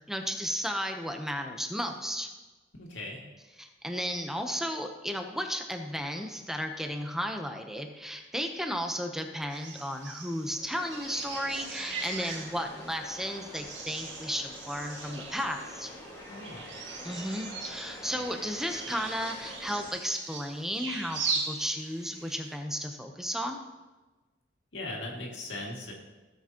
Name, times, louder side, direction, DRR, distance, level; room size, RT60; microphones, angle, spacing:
voice 1, 0.1-2.3 3.6-15.9 17.0-23.6, equal, ahead, 4 dB, 0.8 m, -34 dB
voice 2, 2.8-3.2 16.3-16.6 24.7-25.9, left 2 dB, 80° left, -1 dB, 2.3 m, -38 dB
sound 1, 9.5-22.6, right 4 dB, 90° right, 1.8 m, -40 dB
sound 2, 10.6-19.9, left 1 dB, 20° left, 1.9 m, -47 dB
16.5 x 7.6 x 3.0 m, 1.2 s
head